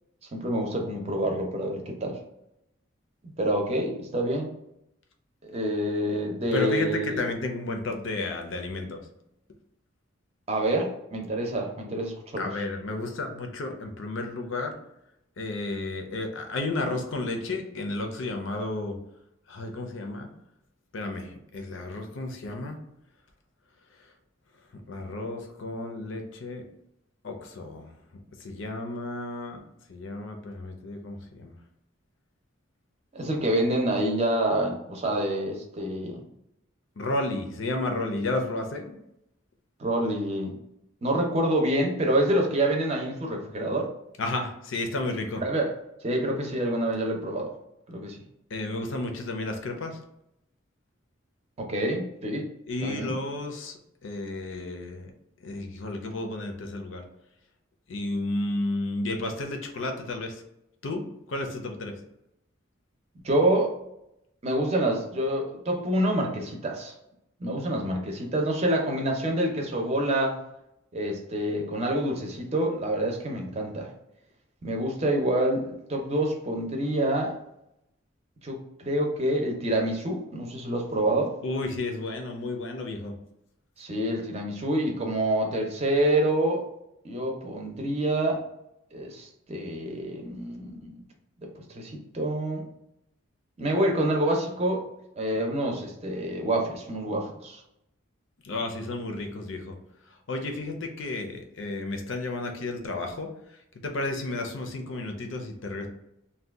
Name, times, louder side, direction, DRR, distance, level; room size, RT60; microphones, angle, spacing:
voice 1, 0.3-2.2 3.4-4.5 5.4-7.3 10.5-12.5 33.1-36.2 39.8-40.6 41.0-43.9 45.4-45.7 46.0-47.5 47.9-48.2 51.6-52.5 52.8-53.2 63.2-63.7 64.4-66.9 67.4-70.4 70.9-73.9 74.6-77.3 78.4-81.3 83.8-86.6 87.0-88.4 88.9-91.0 91.6-92.6 93.6-94.9 95.2-97.6, right 1 dB, 30° right, 1 dB, 0.6 m, -27 dB
voice 2, 6.5-9.0 12.4-14.8 15.4-19.0 19.5-20.3 20.9-22.8 24.9-26.7 27.2-27.9 28.4-29.6 29.9-31.5 37.0-39.0 44.2-45.4 48.5-50.0 52.7-55.1 55.4-57.0 57.9-60.4 60.8-62.0 81.4-83.2 98.4-99.8 100.3-103.3 103.8-105.9, left 2 dB, 70° left, 4 dB, 0.6 m, -32 dB
2.7 x 2.2 x 3.4 m, 0.81 s
head